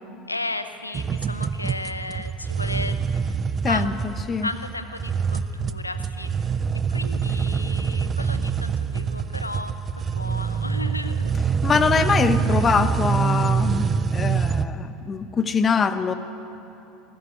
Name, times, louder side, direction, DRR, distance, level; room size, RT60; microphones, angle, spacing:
voice 1, 0.3-3.0 3.7-3.9 4.4-6.3 6.9-11.3, left 2 dB, 85° left, 10 dB, 0.8 m, -34 dB
sound 1, 0.9-14.7, right 6 dB, 30° right, 0.7 m, -25 dB
voice 2, 3.6-4.5 11.6-16.1, left 5 dB, 25° left, 12 dB, 1.0 m, -23 dB
19.5 x 14.5 x 9.4 m, 2.9 s
figure-of-eight pair, 70°, 0 cm